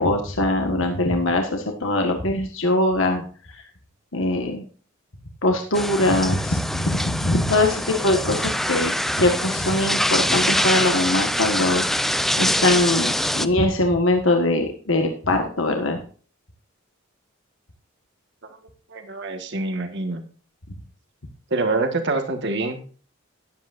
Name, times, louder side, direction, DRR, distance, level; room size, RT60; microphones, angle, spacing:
voice 1, 0.0-3.2 4.1-4.6 5.4-16.0, left 2 dB, 65° left, 3 dB, 1.6 m, -22 dB
sound 1, 5.7-13.5, equal, ahead, 0.4 m, -24 dB
voice 2, 18.9-20.2 21.5-22.9, right 3 dB, 55° right, 6 dB, 1.6 m, -25 dB
13.5 x 11.0 x 2.6 m, 0.40 s
head